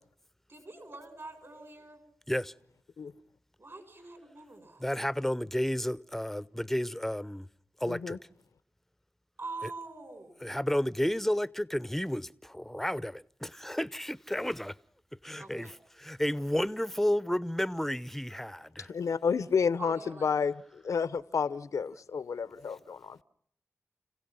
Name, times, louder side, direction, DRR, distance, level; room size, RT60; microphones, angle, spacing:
voice 1, 0.5-2.0 3.6-4.9 9.4-10.4 15.4-15.7 19.8-20.3, right 3 dB, 50° right, 7.2 m, -44 dB
voice 2, 4.8-7.5 7.8-8.2 9.6-9.7 10.4-14.7 15.2-18.9, equal, 5° left, 0.7 m, -32 dB
voice 3, 7.9-8.2 18.9-20.5 20.8-23.2, left 6 dB, 90° left, 0.9 m, -30 dB
30.0 x 16.5 x 5.5 m
cardioid pair, 45°, 5 cm